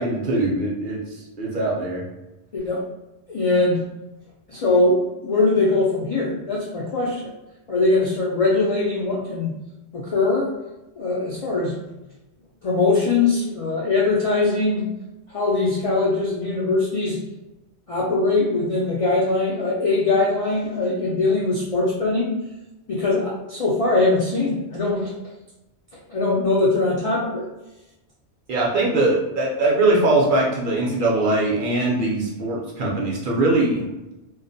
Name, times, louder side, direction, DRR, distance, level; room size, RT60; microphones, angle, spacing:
voice 1, 0.0-2.0 28.5-33.9, right 2 dB, 60° right, -3 dB, 0.6 m, -21 dB
voice 2, 3.3-3.8 4.5-7.3 7.7-9.5 9.9-10.5 11.0-11.8 12.6-14.9 15.3-17.2 17.9-22.3 22.9-25.1 26.1-27.5, left 3 dB, 60° left, -5 dB, 0.3 m, -21 dB
2.3 x 2.1 x 2.5 m, 1.0 s
omnidirectional pair, 1.2 m